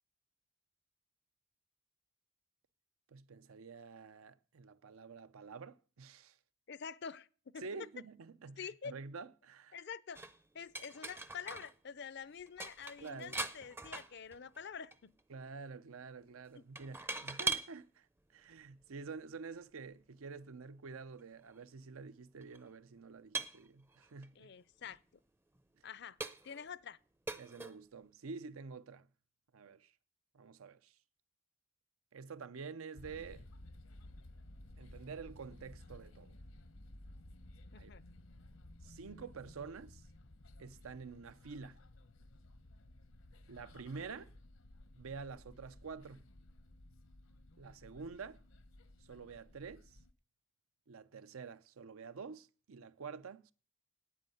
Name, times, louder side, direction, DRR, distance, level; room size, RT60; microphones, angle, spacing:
voice 1, 3.1-6.4 7.6-9.8 13.0-13.4 15.3-18.1 18.3-24.5 27.4-29.1 29.5-29.9 30.3-31.0 32.1-33.5 34.8-36.3 37.8-37.9 38.8-40.0 40.6-41.8 43.5-44.3 45.0-46.3 47.6-48.4 49.0-50.0 50.9-53.5, right 5 dB, 85° right, 0.6 m, -48 dB
voice 2, 6.7-7.3 7.5-7.6 8.6-9.0 9.7-10.2 10.5-15.1 16.5-16.6 24.4-25.0 25.8-26.2 26.4-27.0 37.7-38.0, left 6 dB, 50° left, 0.5 m, -47 dB
sound 1, 10.2-11.7 12.0-12.1 12.4-14.6 14.9-15.2 16.8-17.7 18.6-18.7 21.2-21.3 21.5-21.6 22.4-22.6 23.3-24.3 24.9-25.0 25.6-25.7 26.2-26.7 27.3-27.8, right 3 dB, 10° right, 0.5 m, -41 dB
sound 2, 33.0-50.1, left 1 dB, 80° left, 1.0 m, -56 dB
9.4 x 9.1 x 7.8 m
head